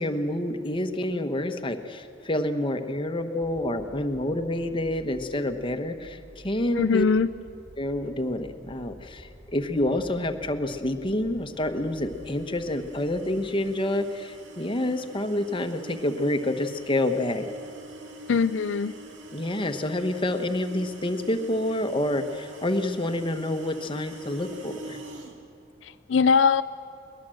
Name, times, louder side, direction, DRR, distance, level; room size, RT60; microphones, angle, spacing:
voice 1, 0.0-7.1 7.8-17.5 19.3-25.0, left 1 dB, 25° left, 6 dB, 1.1 m, -28 dB
sound 1, 3.4-13.7, equal, 20° right, 2.8 m, -50 dB
voice 2, 6.8-7.3 18.3-18.9 25.8-26.6, left 5 dB, 70° left, 12 dB, 0.4 m, -21 dB
sound 2, 11.4-25.4, right 2 dB, 85° right, 2.2 m, -45 dB
22.0 x 19.5 x 7.7 m, 2.5 s
head